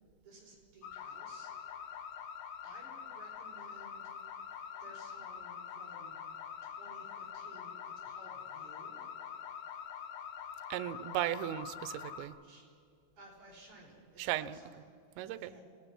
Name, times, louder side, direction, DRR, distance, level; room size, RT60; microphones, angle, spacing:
voice 1, 0.2-2.0 2.6-4.1 4.8-6.2 6.6-7.7 8.0-9.1 12.4-12.6 13.2-15.6, right 1 dB, 45° right, -3 dB, 6.0 m, -57 dB
sound 1, 0.8-12.3, left 8 dB, 70° left, 3.3 m, -45 dB
voice 2, 10.7-12.3 14.2-14.6 15.2-15.5, right 13 dB, 90° right, 15 dB, 3.0 m, -36 dB
25.5 x 18.5 x 6.0 m, 2.5 s
omnidirectional pair, 5.1 m